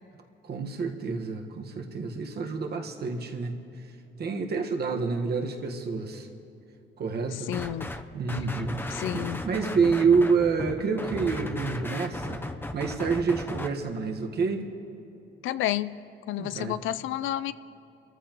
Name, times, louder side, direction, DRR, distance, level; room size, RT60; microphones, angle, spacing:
voice 1, 0.4-3.5 4.2-6.3 7.0-7.5 8.1-12.4 12.7-14.7 16.4-16.7, right 5 dB, 55° right, 3 dB, 1.5 m, -28 dB
voice 2, 7.3-7.9 8.9-9.4 15.4-16.0 16.3-17.5, left 13 dB, 80° left, 15 dB, 0.4 m, -30 dB
sound 1, 7.5-8.0 8.3-13.7, left 2 dB, 10° left, 0.7 m, -35 dB
29.0 x 14.0 x 3.0 m, 2.8 s
cardioid pair, 90°, 20 cm